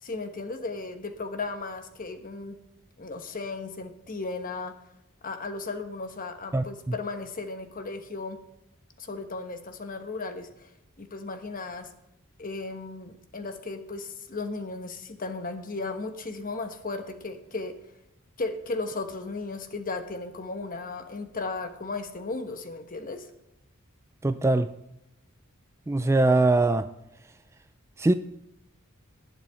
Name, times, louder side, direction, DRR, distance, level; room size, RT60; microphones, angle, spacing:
voice 1, 0.0-2.6 3.0-4.7 5.2-8.4 9.0-10.7 11.0-11.9 12.4-17.7 18.4-23.3, left 3 dB, 40° left, 1.1 m, -35 dB
voice 2, 6.5-6.9 24.2-24.7 25.9-26.9 28.0-28.1, right 2 dB, 15° right, 0.3 m, -22 dB
18.5 x 7.5 x 3.5 m
head